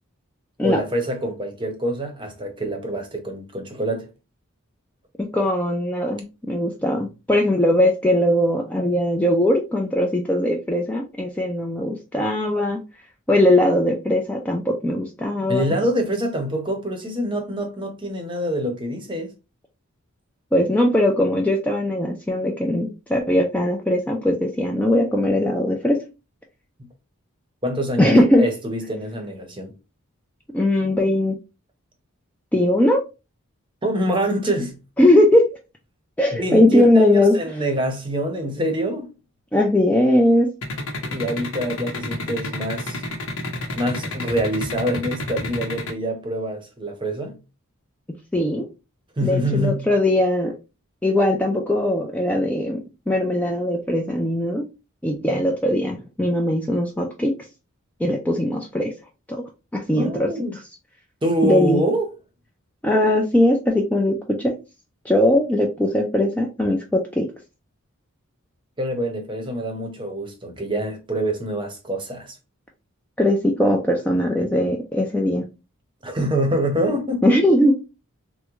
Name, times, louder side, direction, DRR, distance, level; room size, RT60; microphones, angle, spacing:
voice 1, 0.6-4.1 15.5-19.3 27.6-29.7 33.8-34.8 36.4-39.1 41.1-43.0 43.7-47.4 49.2-49.9 60.0-60.6 61.2-62.1 68.8-72.3 76.0-77.4, right 1 dB, 25° right, 0.7 m, -25 dB
voice 2, 5.3-12.8 13.3-15.7 20.5-26.0 28.0-28.5 30.5-31.3 32.5-33.0 35.0-35.5 36.2-37.4 39.5-40.5 48.3-48.7 49.2-50.5 51.0-54.7 55.0-57.3 58.0-58.9 59.3-59.4 59.7-60.3 61.4-61.8 62.8-64.5 65.1-67.3 73.2-75.5 77.2-77.7, left 1 dB, 5° left, 0.3 m, -20 dB
sound 1, 40.6-45.9, left 2 dB, 75° left, 0.8 m, -29 dB
3.5 x 2.1 x 3.0 m
head